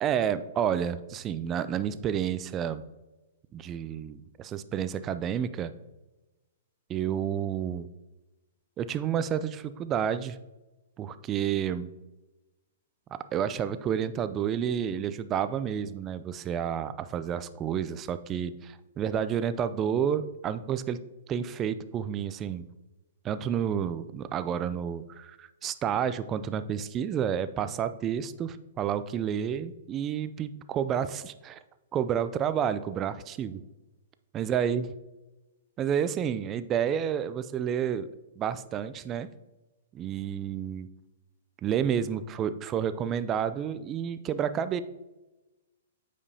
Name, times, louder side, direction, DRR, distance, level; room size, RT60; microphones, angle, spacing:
voice 1, 0.0-2.8 3.5-5.7 6.9-7.9 8.8-10.4 11.0-11.9 13.1-21.0 21.3-22.7 23.2-31.6 31.9-33.6 34.3-34.9 35.8-38.1 38.4-39.3 39.9-40.9 41.6-44.8, right 8 dB, 25° right, 13 dB, 0.4 m, -30 dB
8.5 x 5.0 x 2.7 m, 1.1 s
hypercardioid pair, 130°, 0 cm